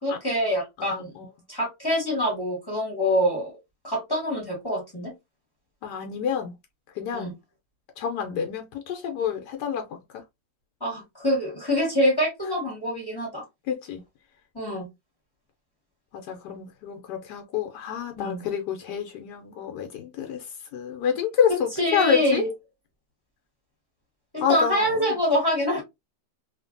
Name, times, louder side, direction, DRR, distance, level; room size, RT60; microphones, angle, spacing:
voice 1, 0.0-1.1 1.5-3.5 3.8-5.1 7.1-7.3 10.8-13.4 14.5-14.9 18.2-18.4 21.8-22.5 24.3-25.8, equal, 15° left, 1.0 m, -25 dB
voice 2, 0.8-1.2 5.8-6.5 6.9-7.3 8.0-10.2 13.7-14.0 16.1-20.5 20.7-22.4 24.4-25.2, left 8 dB, 80° left, 1.1 m, -28 dB
2.8 x 2.5 x 2.5 m
omnidirectional pair, 1.8 m